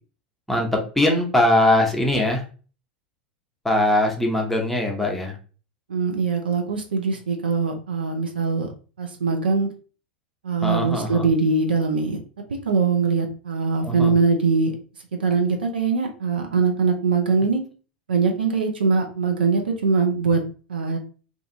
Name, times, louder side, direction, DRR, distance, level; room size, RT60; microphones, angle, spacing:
voice 1, 0.5-2.4 3.6-5.4 10.6-11.2 13.8-14.1, left 1 dB, 5° left, 0 dB, 0.6 m, -21 dB
voice 2, 5.9-8.7 9.0-9.7 10.4-12.2 12.6-14.7 15.2-17.6 18.1-20.4 20.7-21.0, right 4 dB, 70° right, 3 dB, 0.5 m, -22 dB
2.5 x 2.4 x 2.6 m, 0.38 s
figure-of-eight pair, 85°, 5 cm